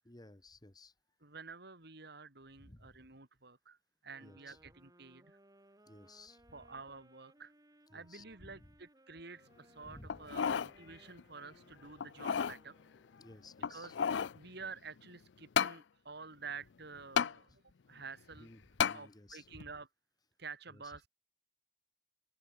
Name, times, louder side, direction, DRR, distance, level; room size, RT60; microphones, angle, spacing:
voice 1, 0.1-0.9 2.6-3.0 4.2-4.6 5.9-6.4 7.9-8.7 9.8-10.5 13.2-14.0 17.5-17.6 18.3-19.7 20.7-20.9, left 2 dB, 25° left, 2.0 m, -56 dB
voice 2, 1.2-3.8 4.0-5.4 6.5-7.5 7.9-12.8 13.7-13.9 14.3-17.6 17.9-18.5 18.9-19.9 20.4-21.1, right 4 dB, 65° right, 3.3 m, -50 dB
sound 1, 4.1-13.3, right 1 dB, 20° right, 7.9 m, -65 dB
sound 2, 10.1-10.7 11.2-11.3 12.0-12.6 13.6-14.4 15.6-15.8 17.2-17.3 18.8-19.0 19.6-19.7, left 7 dB, 75° left, 0.5 m, -32 dB
open air
head